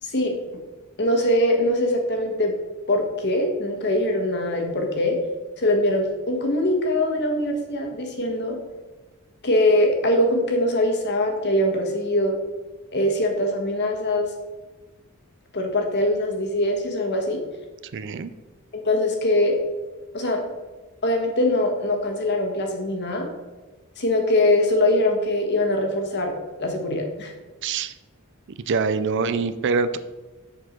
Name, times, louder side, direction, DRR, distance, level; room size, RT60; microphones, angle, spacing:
voice 1, 0.0-0.3 1.0-2.5 2.9-5.2 5.6-8.6 9.4-12.3 12.9-14.3 15.5-17.4 18.7-19.6 20.1-20.4 21.0-23.3 24.0-26.3 26.6-27.3, left 1 dB, 50° left, 3 dB, 1.4 m, -22 dB
voice 2, 17.9-18.3 27.6-27.9 28.7-30.0, right 4 dB, 55° right, 13 dB, 0.4 m, -24 dB
7.0 x 4.6 x 5.8 m, 1.2 s
head